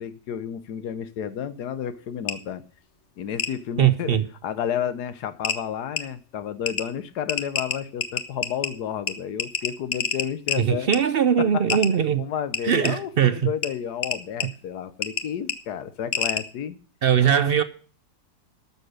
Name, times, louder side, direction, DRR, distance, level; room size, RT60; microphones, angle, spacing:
voice 1, 0.0-2.6 3.2-10.9 11.4-11.8 12.2-16.8, left 8 dB, 80° left, 1.4 m, -31 dB
sound 1, 2.3-2.4 3.4-3.5 4.9-5.0 5.4-5.6 6.0-6.1 6.7-6.8 7.3-8.7 9.1-9.2 9.4-10.6 10.9-11.0 11.7-11.9 12.5-12.9 13.6-13.7 14.0-14.5 15.0-15.2 15.5-15.6 16.1-16.4, left 6 dB, 50° left, 1.2 m, -26 dB
voice 2, 3.8-4.2 10.6-12.2 12.6-13.4 17.0-17.6, right 8 dB, 65° right, 0.6 m, -20 dB
12.5 x 6.7 x 6.4 m
omnidirectional pair, 1.7 m